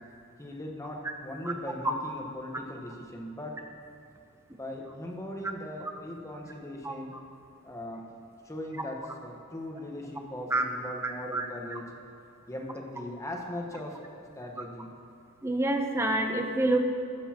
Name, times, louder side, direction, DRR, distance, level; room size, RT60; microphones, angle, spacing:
voice 1, 0.4-3.6 4.5-7.2 7.6-8.0 8.4-11.9 12.5-14.9, left 1 dB, 15° left, 1 dB, 1.2 m, -39 dB
voice 2, 11.0-11.8 15.4-16.8, right 2 dB, 10° right, 4 dB, 0.8 m, -27 dB
20.0 x 8.2 x 3.0 m, 2.7 s
head